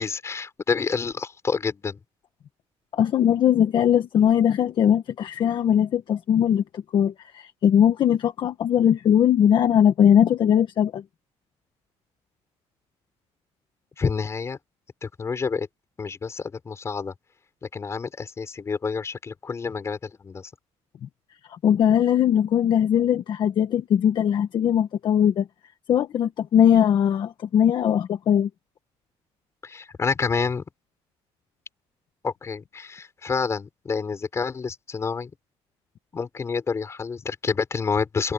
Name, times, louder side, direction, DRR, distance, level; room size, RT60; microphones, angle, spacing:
voice 1, 0.0-2.0 14.0-14.6 15.0-15.7 16.0-17.1 17.6-20.5 29.6-30.6 32.2-35.3 36.1-38.3, left 5 dB, 25° left, 6.0 m, -28 dB
voice 2, 2.9-11.0 21.5-25.5 25.9-28.5, left 9 dB, 45° left, 1.5 m, -20 dB
cardioid pair, 150°, 11 cm